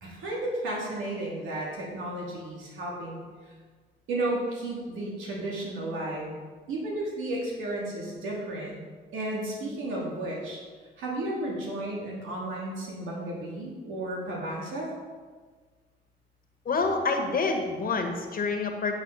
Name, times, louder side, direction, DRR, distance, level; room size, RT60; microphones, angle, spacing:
voice 1, 0.0-3.2 4.1-6.4 6.7-8.8 9.1-10.6 11.0-14.9, right 1 dB, 85° right, -3 dB, 2.7 m, -33 dB
voice 2, 16.7-19.0, left 4 dB, 45° left, 3 dB, 1.7 m, -27 dB
9.0 x 6.3 x 5.6 m, 1.5 s
cardioid pair, 90°, 20 cm